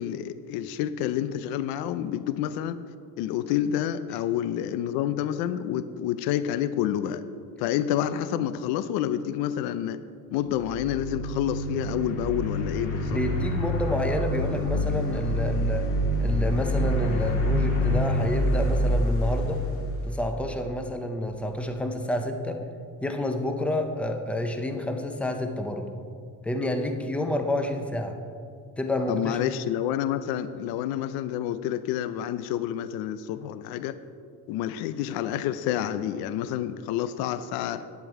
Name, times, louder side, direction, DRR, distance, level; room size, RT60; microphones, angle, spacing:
voice 1, 0.0-2.8 3.2-7.2 7.6-10.0 10.3-13.2 29.1-34.0 34.5-37.9, left 11 dB, 65° left, 12 dB, 0.6 m, -28 dB
sound 1, 10.5-20.7, equal, 35° left, 1.7 m, -27 dB
voice 2, 13.0-15.9 16.2-19.6 20.1-22.6 23.0-25.9 26.4-28.2 28.8-29.5, left 1 dB, 5° left, 5 dB, 0.4 m, -29 dB
10.5 x 9.2 x 4.8 m, 2.3 s
cardioid pair, 175°, 40 cm